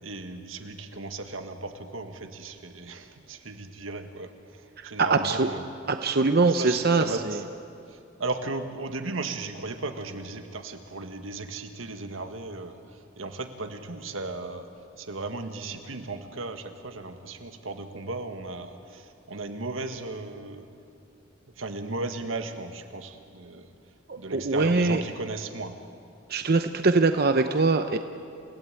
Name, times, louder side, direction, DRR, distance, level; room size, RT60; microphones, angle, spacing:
voice 1, 0.0-5.7 6.5-7.4 7.9-14.7 15.0-20.7 21.6-23.7 24.2-25.7, right 3 dB, 90° right, 7 dB, 1.8 m, -36 dB
voice 2, 4.8-5.5 5.9-7.4 24.1-25.0 26.3-28.0, right 3 dB, 50° right, 8 dB, 0.8 m, -23 dB
28.5 x 16.5 x 9.0 m, 2.5 s
head